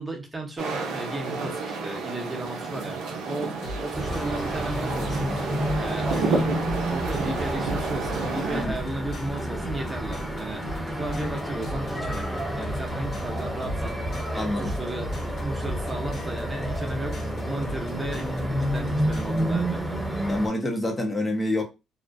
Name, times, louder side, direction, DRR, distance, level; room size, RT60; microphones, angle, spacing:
voice 1, 0.0-6.6 6.9-20.0, right 2 dB, 20° right, 0.8 m, -35 dB
sound 1, 0.6-8.6, right 4 dB, 75° right, 0.5 m, -31 dB
sound 2, 3.6-19.6, left 1 dB, 60° left, 0.8 m, -38 dB
sound 3, 3.9-20.5, right 1 dB, ahead, 1.0 m, -30 dB
voice 2, 14.4-14.7 20.3-21.6, left 1 dB, 20° left, 0.7 m, -27 dB
2.4 x 2.1 x 2.5 m
hypercardioid pair, 55°, 0 cm